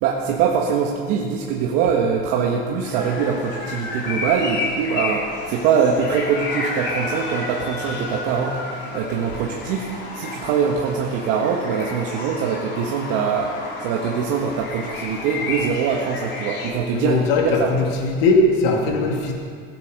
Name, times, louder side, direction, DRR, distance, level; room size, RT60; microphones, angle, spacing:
voice 1, 0.0-17.7, right 6 dB, 60° right, 0 dB, 1.4 m, -23 dB
sound 1, 2.8-16.7, left 3 dB, 40° left, 3.1 m, -31 dB
voice 2, 16.9-19.3, left 2 dB, 75° left, 0 dB, 2.3 m, -19 dB
16.5 x 8.2 x 6.5 m, 2.1 s
supercardioid pair, 130°, 29 cm